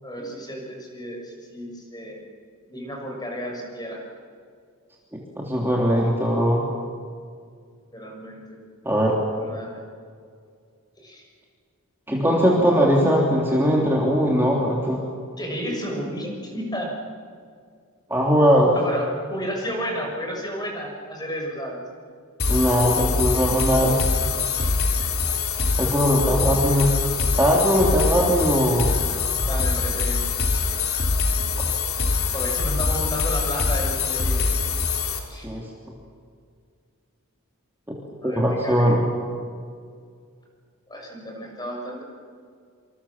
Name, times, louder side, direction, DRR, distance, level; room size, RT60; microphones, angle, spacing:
voice 1, 0.0-2.2 2.7-4.0 7.9-8.6 9.4-9.8 11.0-11.3 15.4-16.9 18.7-21.8 24.5-24.8 29.4-30.2 30.5-30.7 32.3-34.4 35.3-35.5 38.2-39.0 40.9-42.0, equal, 20° left, 0 dB, 6.5 m, -32 dB
voice 2, 5.4-6.6 8.8-9.2 12.1-15.0 18.1-18.7 22.5-24.1 25.8-26.9 27.4-28.9 31.6-31.7 35.4-35.6 38.2-39.0, equal, 10° right, -3 dB, 3.1 m, -20 dB
sound 1, 22.4-35.2, left 4 dB, 70° left, 3.8 m, -24 dB
27.0 x 26.5 x 7.4 m, 2.2 s
head